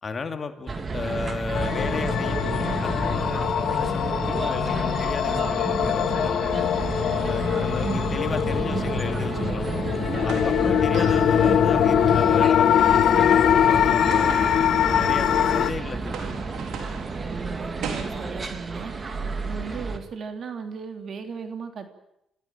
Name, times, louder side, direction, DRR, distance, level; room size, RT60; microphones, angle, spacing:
voice 1, 0.0-6.4 7.2-9.7 10.2-14.4 14.9-16.4, left 4 dB, 40° left, 7 dB, 2.6 m, -34 dB
sound 1, 0.7-20.0, right 4 dB, 35° right, 2.8 m, -30 dB
sound 2, 1.5-15.7, left 10 dB, 70° left, 1.0 m, -22 dB
sound 3, 10.1-15.6 15.9-18.0, right 6 dB, 75° right, 4.1 m, -39 dB
voice 2, 17.2-18.9 19.4-21.9, right 6 dB, 55° right, 6 dB, 3.4 m, -36 dB
27.5 x 15.5 x 9.1 m, 0.83 s
cardioid pair, 90°, 0 cm